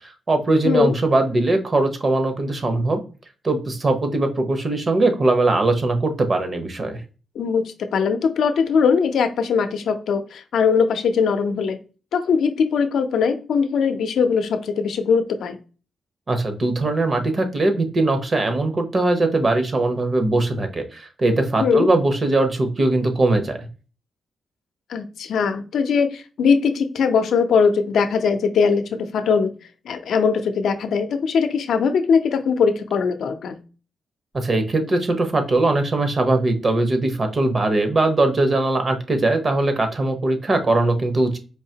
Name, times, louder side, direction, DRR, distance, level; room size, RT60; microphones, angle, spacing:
voice 1, 0.3-3.0 3.4-7.0 16.3-23.7 34.3-41.4, right 2 dB, 35° right, 7 dB, 0.8 m, -20 dB
voice 2, 7.4-11.8 12.1-15.6 21.6-21.9 24.9-29.5 29.9-33.6, left 5 dB, 80° left, 7 dB, 0.6 m, -20 dB
4.6 x 2.8 x 2.8 m, 0.35 s
cardioid pair, 120°, 0 cm